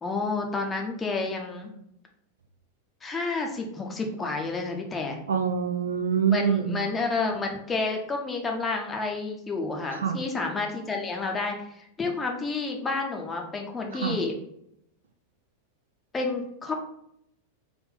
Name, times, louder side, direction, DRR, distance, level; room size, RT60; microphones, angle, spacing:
voice 1, 0.0-1.7 3.0-5.2 6.3-14.3 16.1-16.7, left 3 dB, 15° left, 2 dB, 0.7 m, -30 dB
voice 2, 5.3-6.8 9.9-10.2 13.9-14.2, right 7 dB, 70° right, 7 dB, 0.3 m, -25 dB
3.4 x 2.5 x 3.7 m, 0.76 s
figure-of-eight pair, 90°, 0 cm